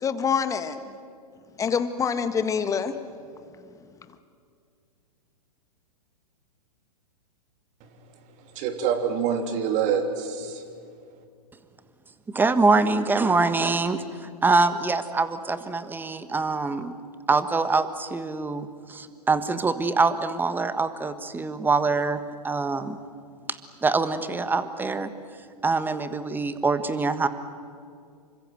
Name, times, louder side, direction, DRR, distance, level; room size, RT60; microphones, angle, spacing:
voice 1, 0.0-0.8 1.6-2.9, left 6 dB, 15° left, 10 dB, 1.6 m, -25 dB
voice 2, 8.5-10.6, right 7 dB, 35° right, 6 dB, 3.1 m, -26 dB
voice 3, 12.3-16.9 17.3-23.0 23.5-25.1 25.6-27.3, right 3 dB, 10° right, 11 dB, 1.5 m, -24 dB
28.5 x 25.0 x 7.8 m, 2.3 s
figure-of-eight pair, 110°, 20 cm